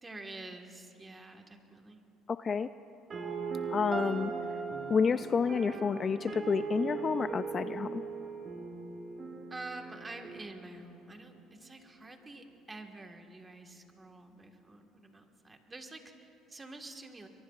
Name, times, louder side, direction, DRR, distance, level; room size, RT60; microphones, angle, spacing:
voice 1, 0.0-2.0 9.5-17.3, right 2 dB, 20° right, 4 dB, 1.5 m, -48 dB
voice 2, 2.3-2.7 3.7-4.3 4.9-8.0, left 5 dB, 35° left, 13 dB, 0.3 m, -29 dB
sound 1, 3.1-11.1, right 5 dB, 35° right, 1.7 m, -39 dB
23.5 x 22.5 x 2.4 m, 2.9 s
supercardioid pair, 100°, 0 cm